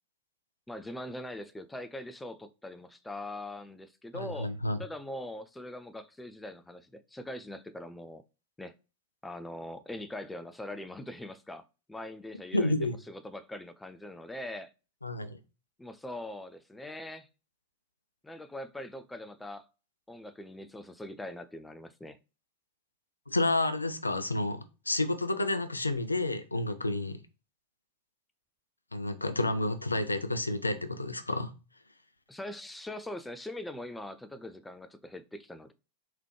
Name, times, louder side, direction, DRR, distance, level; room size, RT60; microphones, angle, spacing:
voice 1, 0.7-4.5 4.8-8.2 8.6-8.7 9.2-11.6 11.9-14.7 15.8-17.3 18.2-19.6 20.1-22.2 32.3-35.7, left 1 dB, 5° left, 0.4 m, -42 dB
voice 2, 4.1-4.8 12.5-13.0 15.0-15.4 23.3-27.2 28.9-31.5, left 2 dB, 80° left, 0.4 m, -30 dB
3.6 x 3.2 x 3.1 m
figure-of-eight pair, 90°, 0 cm